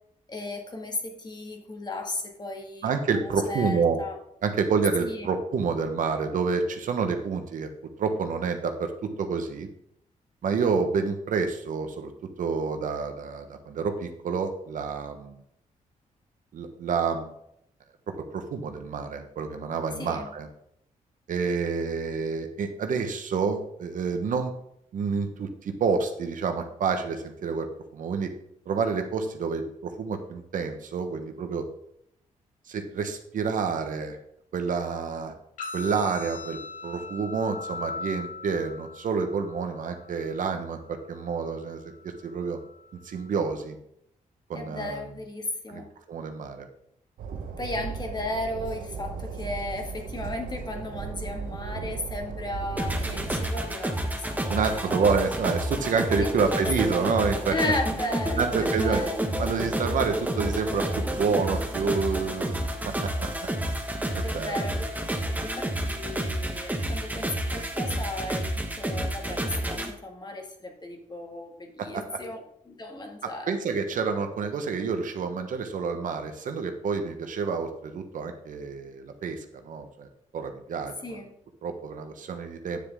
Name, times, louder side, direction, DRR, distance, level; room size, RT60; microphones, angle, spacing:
voice 1, 0.3-4.2 5.0-5.3 20.0-20.3 44.5-45.9 47.6-55.1 56.2-56.6 56.9-57.1 57.5-59.2 64.2-64.9 65.3-73.6 81.0-81.3, left 2 dB, 30° left, 2 dB, 2.0 m, -35 dB
voice 2, 2.8-4.0 4.4-7.7 8.0-9.7 10.4-12.1 12.4-15.4 16.5-17.3 18.2-20.5 21.3-24.5 24.9-27.7 27.9-28.3 28.7-31.7 32.7-34.2 34.5-35.3 35.7-41.9 42.2-42.6 43.0-43.8 44.5-45.0 45.7-45.8 46.1-46.7 54.5-57.6 58.4-59.0 59.4-62.5 62.8-63.3 64.1-64.5 71.8-72.0 73.2-80.1 80.3-81.2 81.6-82.8, right 5 dB, 70° right, 6 dB, 1.2 m, -28 dB
sound 1, 35.6-43.6, left 4 dB, 75° left, 4.0 m, -41 dB
Train, 47.2-53.5, right 5 dB, 90° right, 0.9 m, -36 dB
sound 2, 52.8-69.9, right 1 dB, 10° right, 1.4 m, -30 dB
9.8 x 6.8 x 3.6 m, 0.74 s
cardioid pair, 75°, 14 cm